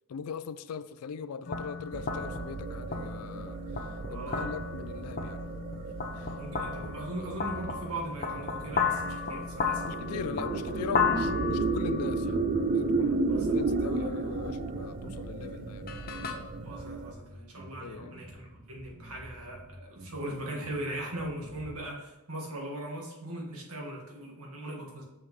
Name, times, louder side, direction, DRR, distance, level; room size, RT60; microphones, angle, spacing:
voice 1, 0.1-3.6 4.1-5.5 6.2-6.3 6.6-6.8 9.8-15.9 17.8-18.1, left 6 dB, 85° left, 0.4 m, -40 dB
sound 1, 1.4-16.3, left 5 dB, 45° left, 0.7 m, -35 dB
sound 2, 1.9-17.1, right 3 dB, 40° right, 0.4 m, -33 dB
voice 2, 4.1-4.5 6.4-9.8 13.3-13.6 16.6-25.0, right 1 dB, 80° right, 1.7 m, -39 dB
Bass guitar, 12.8-21.9, equal, 65° right, 2.3 m, -49 dB
6.6 x 5.6 x 3.1 m
head